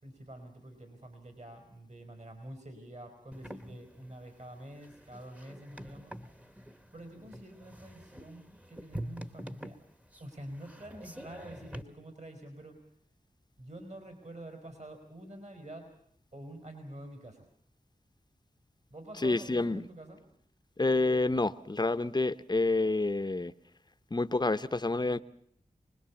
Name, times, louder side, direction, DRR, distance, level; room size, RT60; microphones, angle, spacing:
voice 1, 0.0-9.8 10.2-12.8 13.6-15.9 16.3-17.5 18.9-20.2, right 1 dB, 50° right, 5 dB, 4.6 m, -47 dB
sound 1, 3.3-11.8, equal, 10° right, 1.3 m, -46 dB
voice 2, 19.1-19.8 20.8-23.5 24.1-25.2, left 2 dB, 30° left, 13 dB, 0.9 m, -28 dB
25.0 x 20.5 x 7.2 m, 0.65 s
cardioid pair, 45°, 15 cm